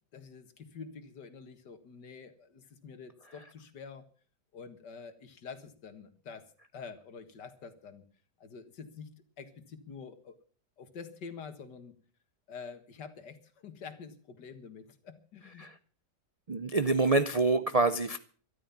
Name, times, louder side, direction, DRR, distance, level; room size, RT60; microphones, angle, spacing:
voice 1, 0.1-4.1 4.5-6.5 6.7-8.0 8.4-10.4 10.8-12.0 12.5-15.7, left 5 dB, 85° left, 9 dB, 2.3 m, -47 dB
voice 2, 16.5-18.2, right 3 dB, 65° right, 12 dB, 0.3 m, -26 dB
13.0 x 12.5 x 7.1 m, 0.43 s
omnidirectional pair, 1.8 m